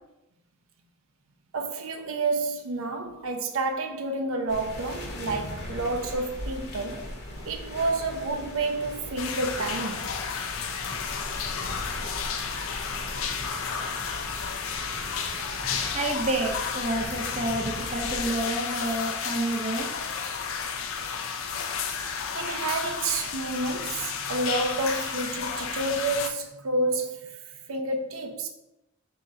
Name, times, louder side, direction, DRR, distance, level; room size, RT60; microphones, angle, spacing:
voice 1, 1.5-7.1 7.4-10.2 22.3-28.5, right 2 dB, 90° right, 0.6 m, -29 dB
sound 1, 4.5-18.4, left 1 dB, 55° left, 1.0 m, -39 dB
sound 2, 9.2-26.3, left 6 dB, 80° left, 0.5 m, -32 dB
voice 2, 15.9-19.9, right 1 dB, 35° right, 0.5 m, -29 dB
3.6 x 2.8 x 4.1 m
head